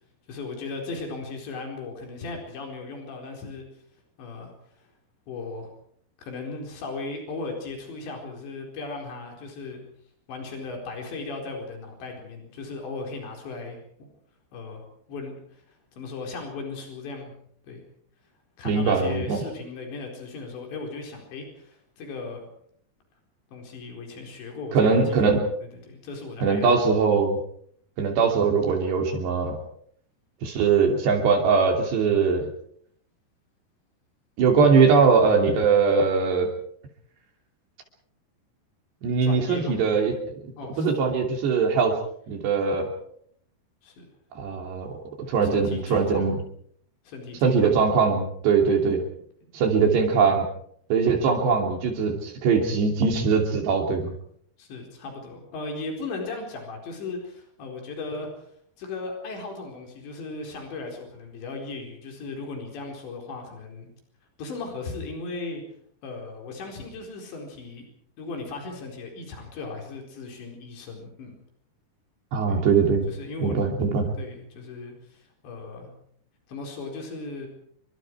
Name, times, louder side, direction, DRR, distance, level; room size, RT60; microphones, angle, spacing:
voice 1, 0.3-3.6 4.2-4.5 5.3-5.7 6.2-9.8 10.3-14.1 14.5-17.3 17.7-17.8 18.6-22.4 23.5-25.4 25.8-26.8 39.2-39.8 40.6-40.9 43.8-44.0 45.4-46.4 47.0-47.7 49.4-49.5 54.6-58.3 58.8-63.9 64.4-65.6 66.0-67.8 68.2-71.4 72.4-72.6 73.1-73.6 74.2-75.9 76.5-77.5, left 3 dB, 85° left, 2 dB, 6.7 m, -37 dB
voice 2, 18.7-19.4 24.7-25.4 26.4-27.4 28.0-29.6 30.4-32.5 34.4-36.5 39.0-40.1 40.8-42.0 42.3-42.9 44.4-44.9 45.3-46.4 47.4-49.0 49.5-50.5 50.9-54.1 72.3-73.1 73.4-74.1, right 5 dB, 75° right, 2 dB, 5.0 m, -21 dB
28.0 x 24.0 x 4.7 m, 0.65 s
omnidirectional pair, 4.9 m